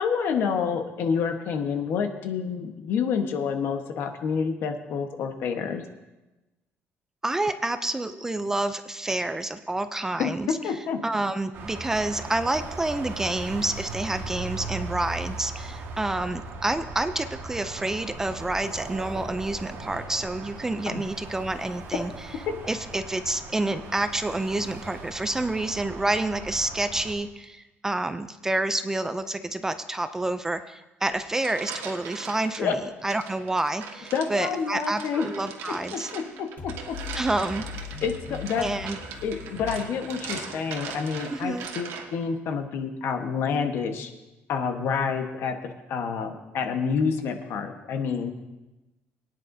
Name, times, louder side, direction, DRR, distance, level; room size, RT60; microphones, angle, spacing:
voice 1, 0.0-5.8 10.2-10.3 10.6-11.0 20.9-21.0 32.6-32.8 34.1-35.3 35.9-37.0 38.0-38.7 39.2-44.1 44.5-48.3, left 6 dB, 60° left, 6 dB, 1.1 m, -28 dB
voice 2, 7.2-10.6 11.0-22.1 22.7-36.1 37.1-37.7 38.6-39.0 41.3-41.7, right 2 dB, 10° right, 10 dB, 0.3 m, -28 dB
sound 1, 11.5-27.1, right 3 dB, 60° right, 1.6 m, -38 dB
sound 2, 31.1-32.6 33.1-42.3, right 6 dB, 80° right, 1.5 m, -40 dB
sound 3, 36.6-42.2, left 5 dB, 40° left, 1.3 m, -41 dB
22.5 x 9.7 x 2.7 m, 1.1 s
cardioid pair, 165°, 4 cm